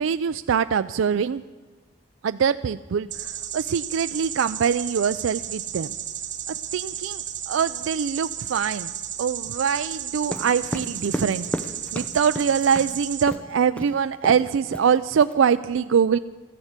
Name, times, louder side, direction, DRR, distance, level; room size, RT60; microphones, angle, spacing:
voice 1, 0.0-1.4 2.2-5.9 6.5-8.9 9.2-11.5 11.9-16.2, right 7 dB, 90° right, 12 dB, 0.4 m, -23 dB
sound 1, 3.1-13.2, right 10 dB, 40° right, 1.1 m, -33 dB
sound 2, 10.2-12.9 13.3-13.5 13.8-13.9 14.2-14.5 14.7-15.3, equal, 5° left, 0.6 m, -32 dB
14.5 x 11.5 x 8.1 m, 1.4 s
head